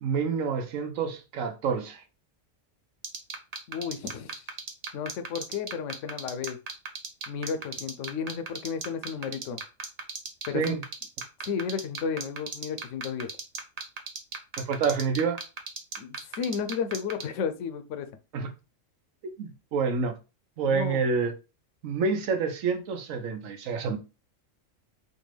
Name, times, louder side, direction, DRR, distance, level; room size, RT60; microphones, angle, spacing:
voice 1, 0.0-2.0 10.5-10.8 14.6-15.4 18.3-18.5 19.4-20.2 20.6-21.3 21.8-24.0, right 5 dB, 80° right, 1.2 m, -28 dB
sound 1, 3.0-17.2, right 5 dB, 40° right, 0.6 m, -34 dB
voice 2, 3.7-4.5 4.9-6.6 7.3-9.6 10.5-10.8 11.4-13.3 16.0-18.1 20.7-21.1, left 6 dB, 70° left, 0.9 m, -33 dB
4.5 x 2.6 x 3.2 m
omnidirectional pair, 1.4 m